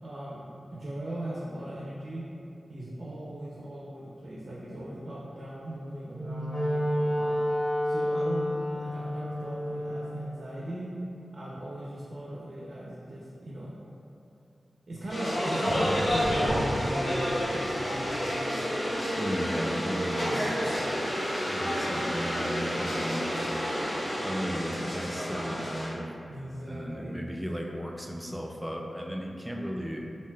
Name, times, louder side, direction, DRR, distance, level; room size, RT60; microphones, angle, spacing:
voice 1, 0.0-0.4 0.7-2.2 2.7-7.4 7.8-10.9 11.3-13.7 14.9-18.5 19.9-20.6 26.3-27.3, right 1 dB, 70° right, -6 dB, 0.4 m, -38 dB
Wind instrument woodwind instrument, 6.0-10.2, equal, 40° left, 1.4 m, -29 dB
sound 1, 15.1-25.9, equal, 75° left, 1.0 m, -29 dB
voice 2, 19.2-20.5 21.5-23.5 24.2-26.1 26.7-30.1, equal, 5° right, 1 dB, 0.3 m, -35 dB
3.2 x 2.6 x 2.2 m, 2.6 s
cardioid pair, 45°, 0 cm